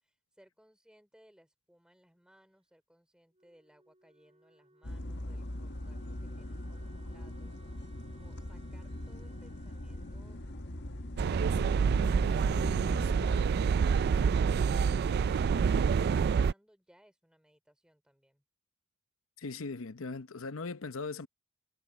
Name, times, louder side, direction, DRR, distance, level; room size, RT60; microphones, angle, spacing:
voice 1, 0.0-7.8 8.2-18.4, equal, 5° right, 3.5 m, -65 dB
Wind instrument woodwind instrument, 3.3-12.0, right 2 dB, 30° right, 5.7 m, -63 dB
sound 1, 4.8-13.4, left 1 dB, 55° left, 1.6 m, -41 dB
sound 2, 11.2-16.5, right 6 dB, 50° right, 0.3 m, -27 dB
voice 2, 19.4-21.3, left 4 dB, 80° left, 0.8 m, -39 dB
head